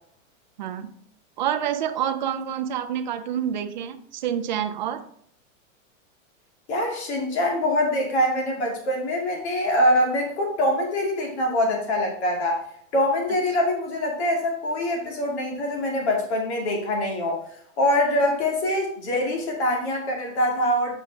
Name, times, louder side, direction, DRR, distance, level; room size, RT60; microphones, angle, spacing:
voice 1, 0.6-0.9 1.4-5.0, right 9 dB, 35° right, 8 dB, 0.4 m, -27 dB
voice 2, 6.7-12.7 12.9-17.4 17.8-21.0, left 1 dB, 50° left, 0 dB, 2.3 m, -24 dB
7.3 x 5.1 x 3.4 m, 0.67 s
supercardioid pair, 175°, 40 cm